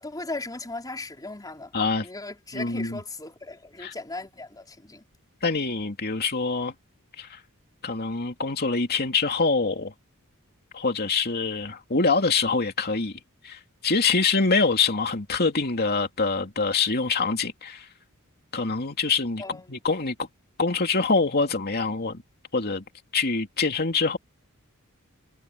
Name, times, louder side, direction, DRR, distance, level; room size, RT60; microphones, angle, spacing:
voice 1, 0.0-1.7 2.0-5.0 19.4-19.8, left 2 dB, 15° left, 4.6 m, -37 dB
voice 2, 1.7-2.1 2.5-3.0 3.8-3.9 5.4-6.7 7.2-7.4 7.8-9.9 10.7-13.1 13.4-17.8 18.5-20.1 20.6-22.2 22.5-22.8 23.1-24.2, left 4 dB, 45° left, 2.9 m, -25 dB
head